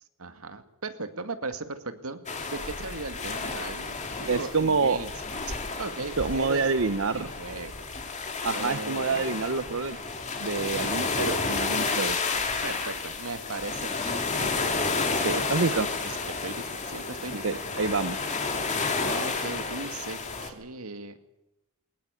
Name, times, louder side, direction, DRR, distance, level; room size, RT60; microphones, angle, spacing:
voice 1, 0.2-2.2 2.5-5.1 5.8-6.7 7.2-7.7 8.5-9.2 12.6-14.8 15.1-15.3 15.7-17.8 19.0-21.2, right 3 dB, 90° right, 8 dB, 2.3 m, -37 dB
sound 1, 2.3-20.5, left 4 dB, 35° left, 3.0 m, -31 dB
voice 2, 4.3-5.0 6.2-7.3 8.4-10.0 10.4-12.2 15.2-15.9 17.4-18.2, right 4 dB, 65° right, 10 dB, 0.9 m, -27 dB
21.5 x 20.0 x 8.3 m, 0.89 s
head